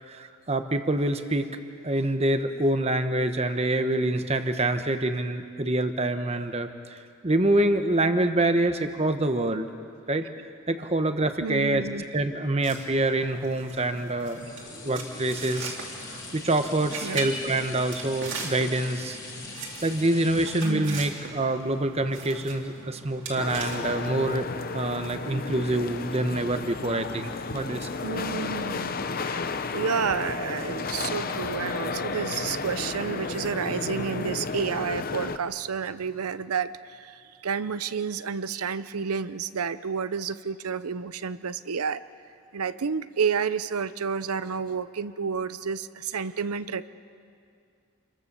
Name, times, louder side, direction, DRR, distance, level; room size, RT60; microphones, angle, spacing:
voice 1, 0.1-1.5 1.8-9.7 10.1-10.3 10.7-11.8 12.1-14.4 14.8-15.8 16.3-19.2 19.8-27.9, right 1 dB, 30° right, 8 dB, 1.1 m, -26 dB
voice 2, 11.4-12.0 17.0-17.3 20.6-21.0 28.0-28.9 29.2-42.0 42.5-46.9, right 6 dB, 80° right, 14 dB, 0.7 m, -30 dB
sound 1, 12.6-24.4, right 3 dB, 55° right, 3.4 m, -40 dB
sound 2, 13.4-23.1 23.6-23.7, left 3 dB, 20° left, 2.4 m, -43 dB
sound 3, 23.3-35.4, left 4 dB, 40° left, 0.8 m, -32 dB
28.0 x 22.5 x 6.9 m, 2.3 s
head